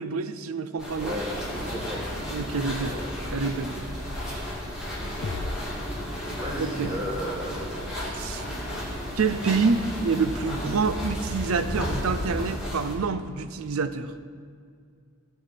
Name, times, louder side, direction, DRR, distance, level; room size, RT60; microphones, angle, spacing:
voice 1, 0.0-1.1 2.3-3.0 3.3-3.7 6.6-6.9 8.1-8.4 9.2-14.1, right 4 dB, 80° right, 12 dB, 0.6 m, -27 dB
sound 1, 0.8-13.0, equal, 5° right, 2.3 m, -33 dB
voice 2, 1.0-2.1 2.8-3.0 5.0-5.1 6.3-7.7 8.0-8.2, equal, 25° right, -2 dB, 1.9 m, -34 dB
sound 2, 5.2-6.9, left 3 dB, 70° left, 0.5 m, -37 dB
15.0 x 5.8 x 5.8 m, 2.2 s
head